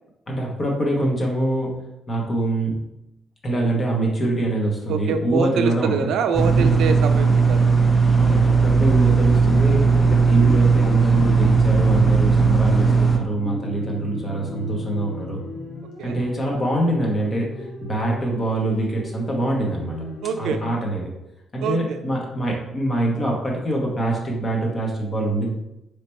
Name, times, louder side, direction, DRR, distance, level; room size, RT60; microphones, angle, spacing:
voice 1, 0.3-1.8 2.1-2.8 3.4-6.1 6.5-6.8 8.2-15.4 16.0-19.9 20.4-21.1 21.5-25.5, right 1 dB, 35° left, -1 dB, 1.0 m, -24 dB
voice 2, 4.9-7.6 16.0-16.2 20.2-20.6 21.6-22.0, right 6 dB, 80° right, 8 dB, 0.4 m, -24 dB
sound 1, 6.3-13.2, right 4 dB, 20° left, 0.5 m, -17 dB
sound 2, 8.8-20.8, left 2 dB, 75° left, 1.0 m, -36 dB
3.2 x 2.9 x 4.3 m, 0.90 s
cardioid pair, 90°, 0 cm